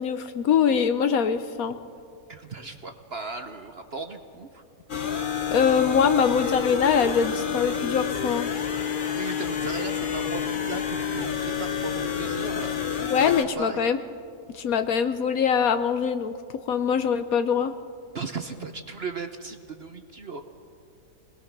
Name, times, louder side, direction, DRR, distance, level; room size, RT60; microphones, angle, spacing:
voice 1, 0.0-1.8 5.5-8.5 13.0-14.0 14.5-16.3 16.7-17.7, left 7 dB, 65° left, 10 dB, 1.1 m, -23 dB
voice 2, 2.3-4.6 9.1-12.8 13.2-13.8 18.1-20.4, right 4 dB, 45° right, 7 dB, 0.9 m, -36 dB
sound 1, 4.9-13.4, left 7 dB, 40° left, 0.8 m, -29 dB
26.0 x 19.0 x 6.0 m, 2.4 s
omnidirectional pair, 1.8 m